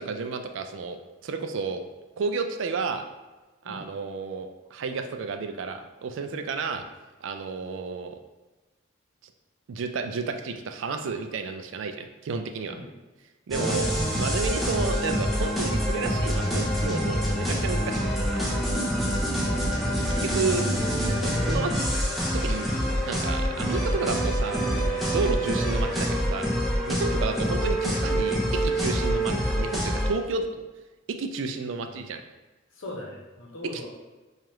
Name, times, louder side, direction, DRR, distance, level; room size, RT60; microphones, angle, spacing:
voice 1, 0.0-1.8 2.2-3.1 3.6-6.9 7.2-8.2 9.7-12.7 13.5-13.9 14.1-18.4 20.1-20.6 21.1-21.9 22.3-22.7 23.1-26.5 26.9-30.6 31.1-32.2 33.7-33.9, right 4 dB, 70° right, 6 dB, 0.3 m, -31 dB
sound 1, 13.5-30.1, equal, ahead, 0.5 m, -26 dB
sound 2, 19.5-26.1, right 1 dB, 40° right, 0.7 m, -43 dB
voice 2, 20.4-20.8 27.3-27.5 31.8-32.0 32.7-33.9, left 1 dB, 75° left, -1 dB, 0.8 m, -40 dB
4.6 x 2.4 x 3.0 m, 1.2 s
head